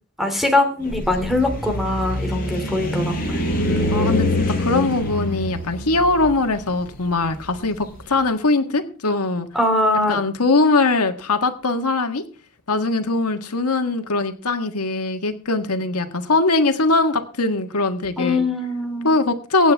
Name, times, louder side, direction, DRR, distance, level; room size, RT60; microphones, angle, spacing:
voice 1, 0.2-3.4 4.6-4.9 9.5-10.2 18.2-19.1, left 2 dB, ahead, 4 dB, 2.6 m, -22 dB
sound 1, 0.8-8.0, left 1 dB, 40° left, 7.2 m, -25 dB
voice 2, 3.9-9.5 10.1-12.2 12.7-18.4 19.0-19.7, left 3 dB, 90° left, 6 dB, 1.6 m, -21 dB
23.5 x 8.9 x 3.5 m, 0.39 s
head